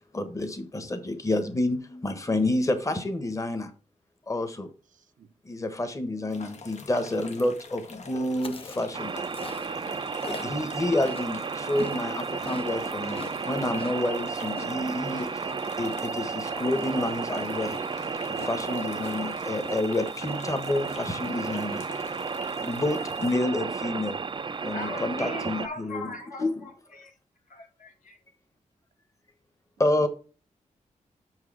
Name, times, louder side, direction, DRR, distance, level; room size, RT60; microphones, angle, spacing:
voice 1, 0.1-3.7 4.3-4.7 5.4-9.1 10.3-15.4 15.8-17.8 18.3-21.8 22.5-24.2 24.6-26.1 26.4-26.5 29.8-30.1, left 1 dB, 25° left, 1.3 m, -29 dB
voice 2, 4.9-5.9 10.4-11.0 30.0-30.1, right 8 dB, 80° right, 0.7 m, -56 dB
sound 1, 6.3-23.4, left 4 dB, 60° left, 1.2 m, -46 dB
Chewing mastication, 8.3-12.0 12.2-20.0 20.2-20.6 20.8-21.6, left 4 dB, 45° left, 0.8 m, -43 dB
sound 2, 8.9-25.7, right 5 dB, 40° right, 0.5 m, -33 dB
voice 3, 24.7-27.2 27.5-28.2, left 2 dB, 85° left, 2.5 m, -39 dB
6.4 x 4.8 x 6.1 m
cardioid pair, 90°, 13 cm